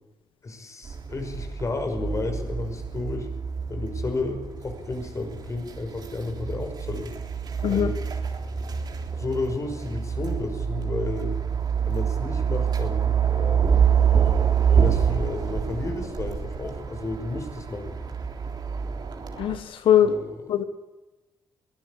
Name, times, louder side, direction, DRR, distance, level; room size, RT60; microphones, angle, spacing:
voice 1, 0.4-3.3 3.7-7.1 7.7-8.0 9.2-11.4 11.9-13.7 14.7-18.0 20.0-20.4, left 3 dB, 35° left, 6 dB, 5.6 m, -32 dB
sound 1, 0.8-19.6, right 7 dB, 55° right, 3.5 m, -26 dB
voice 2, 19.4-20.1 20.5-20.6, left 10 dB, 90° left, 9 dB, 1.2 m, -21 dB
22.5 x 16.5 x 8.6 m, 1.1 s
cardioid pair, 110°, 9 cm